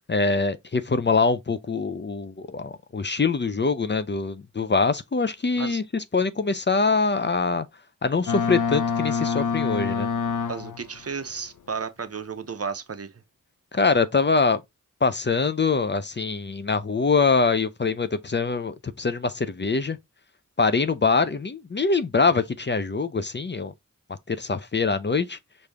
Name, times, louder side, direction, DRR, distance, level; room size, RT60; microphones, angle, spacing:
voice 1, 0.1-7.7 8.0-10.1 13.7-14.6 15.0-20.0 20.6-23.7 24.3-25.4, left 4 dB, 35° left, 0.5 m, -24 dB
Boat Water vehicle, 8.3-11.0, left 5 dB, 75° left, 0.6 m, -26 dB
voice 2, 10.5-13.2, right 5 dB, 50° right, 0.7 m, -33 dB
5.0 x 2.7 x 3.4 m
wide cardioid pair, 55°, 32 cm